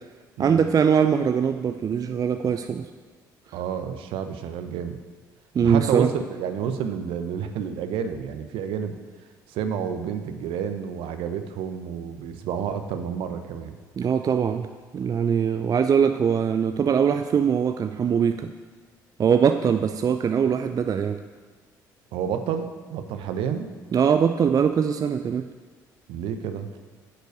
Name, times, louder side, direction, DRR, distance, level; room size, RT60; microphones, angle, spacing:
voice 1, 0.4-2.9 5.5-6.1 14.0-14.7 14.9-18.5 19.2-21.2 23.9-25.5, right 7 dB, 35° right, 8 dB, 0.5 m, -22 dB
voice 2, 3.5-5.0 5.6-8.9 9.5-13.8 22.1-23.7 26.1-26.7, right 8 dB, 60° right, 8 dB, 0.9 m, -30 dB
9.7 x 6.6 x 8.0 m, 1.5 s
figure-of-eight pair, 50°, 10 cm